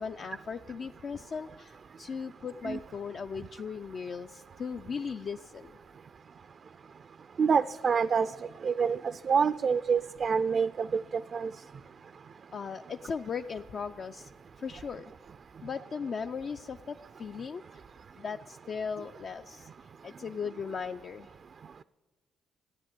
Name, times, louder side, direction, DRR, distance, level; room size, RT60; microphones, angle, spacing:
voice 1, 0.0-5.7 12.5-14.3 14.6-15.1 15.6-17.8 18.2-21.3, left 6 dB, 50° left, 8 dB, 0.4 m, -38 dB
voice 2, 7.4-8.3 8.6-9.0 9.2-11.0 11.3-11.5, right 6 dB, 45° right, 14 dB, 0.3 m, -26 dB
12.5 x 9.4 x 9.0 m, 1.4 s
cardioid pair, 90°, 0 cm